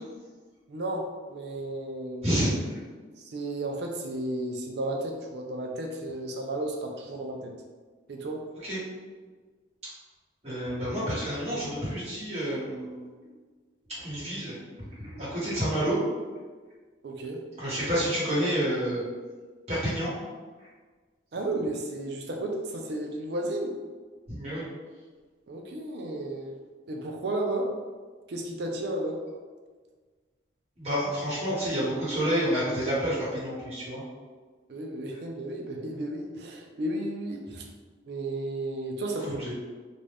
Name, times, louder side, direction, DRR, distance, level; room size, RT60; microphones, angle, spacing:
voice 1, 0.7-2.4 3.2-7.5 8.1-8.4 17.0-17.4 21.3-23.8 25.5-26.6 26.9-27.7 28.3-29.2 34.7-37.6 38.1-39.4, right 1 dB, 60° right, 1 dB, 0.4 m, -33 dB
voice 2, 2.2-2.8 8.6-8.8 10.4-13.0 14.0-14.5 15.0-16.0 17.6-19.1 19.7-20.1 24.3-24.6 30.8-34.0 39.2-39.5, equal, 35° right, -9 dB, 1.1 m, -29 dB
2.5 x 2.2 x 3.3 m, 1.4 s
head